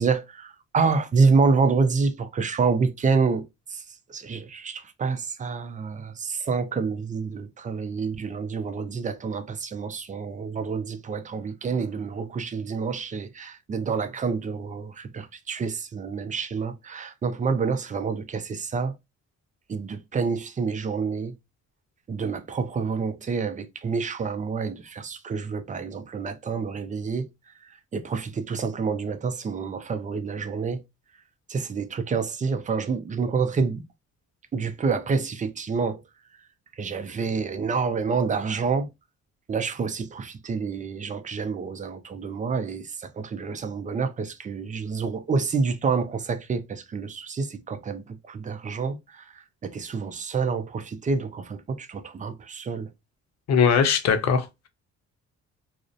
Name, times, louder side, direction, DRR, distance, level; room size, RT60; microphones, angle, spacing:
voice 1, 0.0-3.4 3.7-3.8 4.1-18.9 19.7-21.3 22.1-27.3 27.9-30.8 31.5-33.8 34.5-36.0 36.8-38.9 39.5-52.9, right 5 dB, 25° right, 0.4 m, -28 dB
voice 2, 53.5-54.7, left 6 dB, 60° left, 0.6 m, -21 dB
2.4 x 2.0 x 2.5 m
cardioid pair, 90°, 30 cm